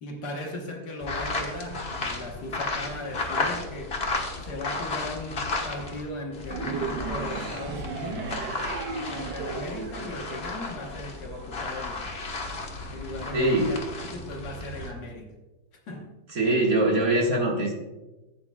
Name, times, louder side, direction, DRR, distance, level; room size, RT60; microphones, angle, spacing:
voice 1, 0.0-4.0 4.4-8.4 9.1-12.1 12.9-13.8 14.1-15.3 15.9-16.1, left 1 dB, 55° left, 1 dB, 1.7 m, -37 dB
sound 1, 1.0-6.0 6.3-14.9, left 3 dB, 35° left, 1.3 m, -33 dB
sound 2, 6.5-11.0, right 5 dB, 65° right, 1.3 m, -35 dB
voice 2, 13.3-13.8 16.3-17.7, right 1 dB, 45° right, -1 dB, 1.9 m, -23 dB
15.0 x 8.6 x 2.3 m, 1.1 s
omnidirectional pair, 2.2 m